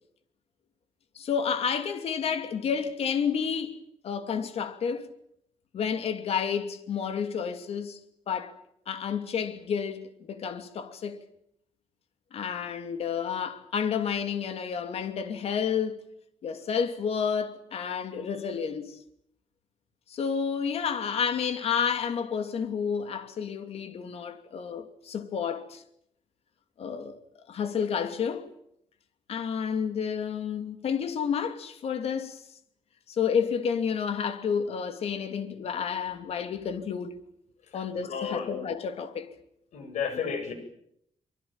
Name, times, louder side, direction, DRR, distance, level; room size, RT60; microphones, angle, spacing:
voice 1, 1.1-3.8 4.0-5.1 5.7-8.0 8.3-8.5 8.9-11.2 12.3-16.0 16.4-19.0 20.1-25.8 26.8-27.2 27.5-28.5 29.3-32.4 33.1-37.2 37.7-39.3, left 7 dB, 60° left, 2.9 m, -30 dB
voice 2, 37.7-38.5 39.7-40.5, left 6 dB, 90° left, 7.7 m, -33 dB
25.0 x 24.0 x 9.0 m
wide cardioid pair, 165°, 12 cm